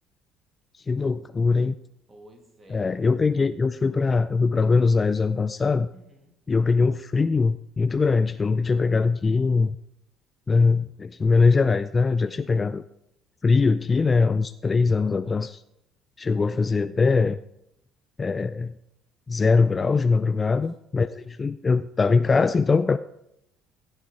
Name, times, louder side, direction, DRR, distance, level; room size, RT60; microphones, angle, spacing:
voice 1, 0.9-1.7 2.7-5.9 6.5-9.8 10.5-12.8 13.4-15.6 16.2-17.4 18.2-18.7 19.3-23.0, left 4 dB, 25° left, 14 dB, 0.3 m, -22 dB
voice 2, 2.1-2.8 5.9-6.4 12.2-12.6 20.4-20.7 21.0-21.4, right 1 dB, 25° right, 3 dB, 2.5 m, -53 dB
15.5 x 6.5 x 4.6 m, 0.81 s
figure-of-eight pair, 55°, 0 cm